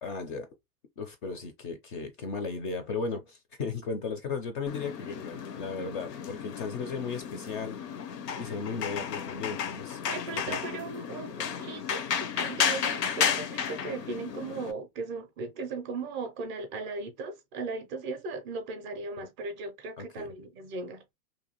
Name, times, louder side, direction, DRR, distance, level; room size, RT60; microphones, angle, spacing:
voice 1, 0.0-0.5 1.0-7.8 8.1-10.0 10.3-10.6 20.0-20.3, left 4 dB, 35° left, 0.4 m, -36 dB
sound 1, 4.7-14.7, left 7 dB, 90° left, 0.7 m, -33 dB
voice 2, 10.1-21.0, right 3 dB, 30° right, 0.4 m, -37 dB
2.7 x 2.3 x 2.8 m
hypercardioid pair, 130°, 48 cm